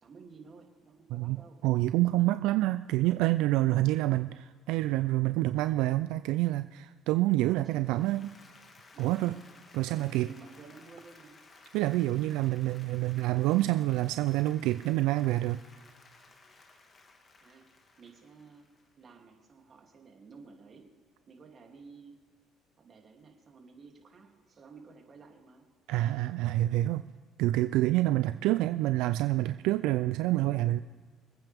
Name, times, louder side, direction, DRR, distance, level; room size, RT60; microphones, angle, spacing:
voice 1, 0.0-1.6 7.5-8.1 8.9-9.4 9.9-11.4 17.4-17.7 18.0-18.7 19.0-20.9 21.3-22.1 22.8-25.6, right 4 dB, 40° right, 1 dB, 2.9 m, -53 dB
voice 2, 1.1-8.3 9.0-9.3 9.7-10.3 11.7-15.6 25.9-27.0 27.4-30.8, right 16 dB, 80° right, 12 dB, 0.3 m, -27 dB
Applause, 7.8-19.1, left 3 dB, 35° left, 1.8 m, -57 dB
27.0 x 9.0 x 3.6 m, 1.5 s
cardioid pair, 95°, 0 cm